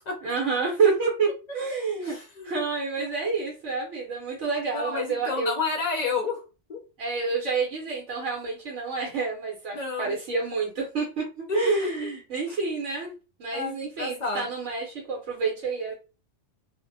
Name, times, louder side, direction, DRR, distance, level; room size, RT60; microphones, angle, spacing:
voice 1, 0.2-2.2 2.4-5.6 7.0-11.3 11.5-13.1 13.4-15.9, right 4 dB, 90° right, -3 dB, 1.2 m, -28 dB
voice 2, 2.0-2.6 3.0-3.1 4.7-6.4 6.7-6.8 9.7-10.2 11.5-12.1 12.5-12.6 13.5-14.5, left 4 dB, 55° left, 2 dB, 0.5 m, -31 dB
2.5 x 2.1 x 2.6 m, 0.32 s
omnidirectional pair, 1.2 m